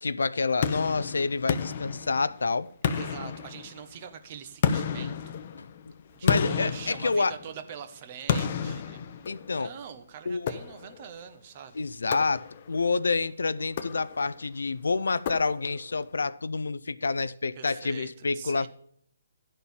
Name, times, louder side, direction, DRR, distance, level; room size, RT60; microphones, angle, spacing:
voice 1, 0.0-2.7 5.6-5.7 6.2-7.3 9.3-9.7 10.3-10.5 11.8-18.7, left 4 dB, 80° left, 0.5 m, -28 dB
sound 1, 0.6-2.4 2.8-4.0 4.6-7.7 8.3-9.7 10.5-11.1 12.1-12.8 13.6-14.4 15.3-15.9, left 7 dB, 45° left, 0.7 m, -31 dB
voice 2, 3.0-5.4 6.1-11.9 17.5-18.7, right 8 dB, 35° right, 1.1 m, -44 dB
11.5 x 4.3 x 6.9 m
hypercardioid pair, 150°, 0 cm